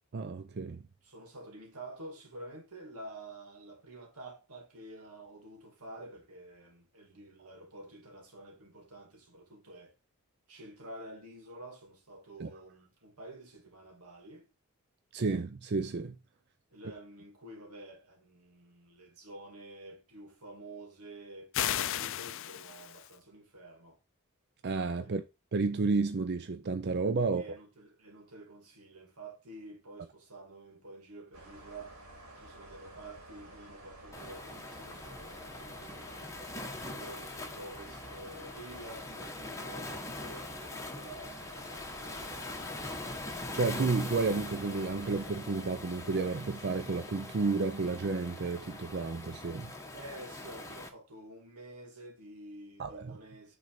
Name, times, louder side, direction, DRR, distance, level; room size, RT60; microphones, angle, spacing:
voice 1, 0.1-0.8 12.4-12.5 15.1-16.2 24.6-25.2 25.5-27.4 43.5-49.7 52.8-53.2, right 4 dB, 50° right, 0.5 m, -31 dB
voice 2, 1.0-9.9 10.5-14.5 16.7-24.0 25.0-25.1 27.3-32.0 32.4-36.3 36.8-42.7 49.9-53.6, right 1 dB, 90° right, 2.4 m, -49 dB
sound 1, 21.5-23.1, left 11 dB, 60° left, 0.4 m, -34 dB
sound 2, 31.3-45.3, right 1 dB, 75° right, 2.7 m, -52 dB
Waves surf, 34.1-50.9, left 2 dB, 15° left, 1.0 m, -43 dB
6.2 x 3.9 x 5.7 m
head